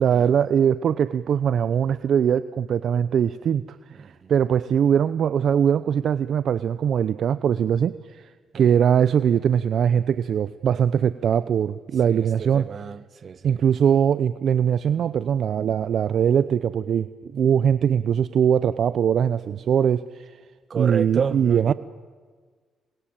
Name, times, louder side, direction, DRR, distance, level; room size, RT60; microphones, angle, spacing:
voice 1, 0.0-12.7 13.4-20.3 20.8-21.7, right 8 dB, 60° right, 0.7 m, -21 dB
voice 2, 12.0-13.6 20.7-21.7, right 6 dB, 45° right, 1.4 m, -30 dB
28.0 x 21.5 x 9.0 m
cardioid pair, 90°, 0 cm